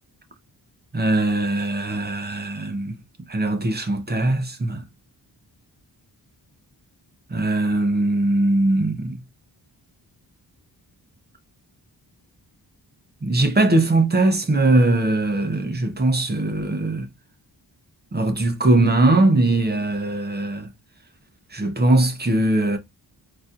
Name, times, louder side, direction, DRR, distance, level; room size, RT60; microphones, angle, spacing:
voice 1, 0.9-3.0 3.3-4.8 7.3-9.2 13.2-17.1 18.1-20.7 21.5-22.8, right 2 dB, 25° right, 0.6 m, -20 dB
4.0 x 2.6 x 2.3 m
wide cardioid pair, 160°, 41 cm